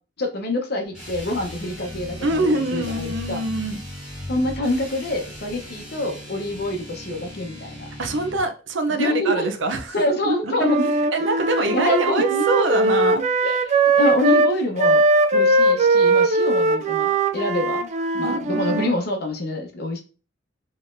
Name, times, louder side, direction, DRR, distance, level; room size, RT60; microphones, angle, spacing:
voice 1, 0.2-3.4 4.3-7.9 8.9-9.5 9.9-10.9 11.6-12.5 13.4-15.0 15.3-17.9 18.1-20.0, left 1 dB, 60° left, 4 dB, 0.9 m, -26 dB
sound 1, 0.9-8.5, left 1 dB, 5° right, 2.1 m, -37 dB
voice 2, 2.2-3.8 8.0-9.9 10.3-10.5 11.1-13.2 18.2-18.9, right 2 dB, 80° right, 7 dB, 0.6 m, -24 dB
Wind instrument woodwind instrument, 10.6-18.9, right 2 dB, 40° right, 0.4 m, -20 dB
4.0 x 3.1 x 2.6 m, 0.34 s
head